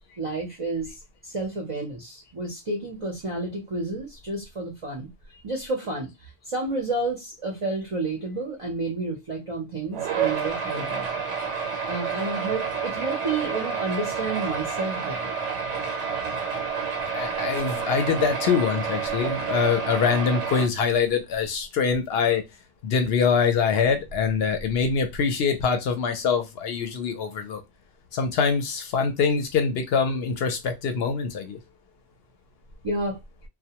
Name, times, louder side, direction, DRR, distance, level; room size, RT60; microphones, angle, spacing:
voice 1, 0.2-11.2 11.9-15.4 32.8-33.2, right 2 dB, 40° right, 0.5 m, -31 dB
sound 1, 9.9-20.7, right 6 dB, 90° right, 1.0 m, -29 dB
voice 2, 17.1-22.4 22.8-27.6 28.1-31.6, left 6 dB, 70° left, 0.8 m, -24 dB
2.1 x 2.1 x 2.8 m
omnidirectional pair, 1.2 m